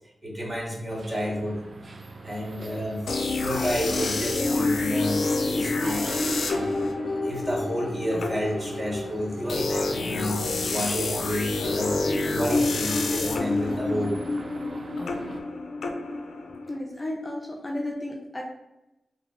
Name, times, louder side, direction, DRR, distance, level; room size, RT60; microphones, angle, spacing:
voice 1, 0.2-1.6 2.2-3.0 3.4-10.4 10.7-14.1, equal, 25° right, -2 dB, 0.9 m, -31 dB
sound 1, 0.9-15.4, right 2 dB, 55° right, 0.3 m, -42 dB
sound 2, 3.1-16.8, left 3 dB, 85° left, 0.3 m, -28 dB
voice 2, 16.7-18.4, left 1 dB, 20° left, -1 dB, 0.4 m, -33 dB
2.6 x 2.0 x 3.6 m, 0.93 s
cardioid pair, 75°, 0 cm